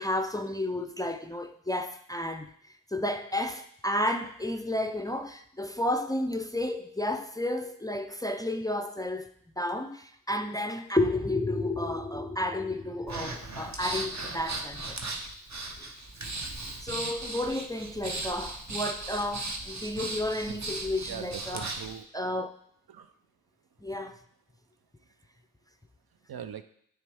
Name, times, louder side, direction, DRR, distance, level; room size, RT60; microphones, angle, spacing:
voice 1, 0.0-2.5 2.9-9.3 9.6-15.0 16.8-21.6 22.1-22.5 23.8-24.2, left 1 dB, 10° left, 0.4 m, -31 dB
Breathing, 13.1-21.9, right 2 dB, 45° right, 0.9 m, -37 dB
voice 2, 21.1-22.1 22.9-23.1 23.7-23.8 25.0-25.1 26.1-26.6, right 9 dB, 70° right, 0.5 m, -42 dB
9.3 x 3.4 x 3.4 m
wide cardioid pair, 55°, 37 cm